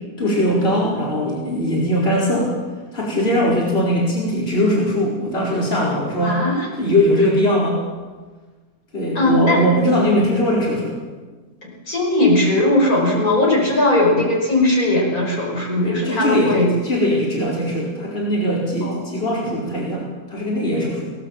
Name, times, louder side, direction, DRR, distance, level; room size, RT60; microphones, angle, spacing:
voice 1, 0.2-2.5 2.9-6.4 6.8-7.8 8.9-11.0 15.8-16.5 16.8-21.1, equal, 35° left, -4 dB, 4.9 m, -20 dB
voice 2, 6.2-6.7 9.2-9.7 11.6-16.7 18.8-19.0, left 2 dB, 55° left, -3 dB, 5.7 m, -18 dB
22.5 x 17.5 x 7.3 m, 1.3 s
omnidirectional pair, 1.8 m